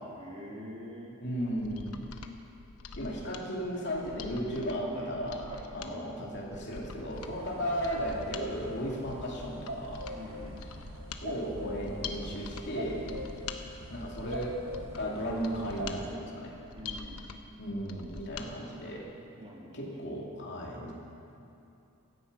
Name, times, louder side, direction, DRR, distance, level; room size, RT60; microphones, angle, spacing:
voice 1, 0.1-1.2 4.9-5.1 5.5-6.0 7.3-7.5 8.2-8.4 8.9-9.1 10.1-10.6 13.1-13.2 16.8-17.3 19.4-20.1, equal, 30° right, -2 dB, 2.5 m, -46 dB
voice 2, 1.2-1.9 3.0-10.2 11.2-13.1 13.9-16.6 17.6-19.1 19.7-20.9, equal, 50° left, -3 dB, 2.9 m, -35 dB
Mechanisms, 1.5-18.5 18.8-18.9, left 4 dB, 80° left, 1.0 m, -45 dB
sound 1, 7.1-16.1, right 1 dB, 65° right, 1.6 m, -42 dB
16.5 x 13.5 x 5.5 m, 2.7 s
head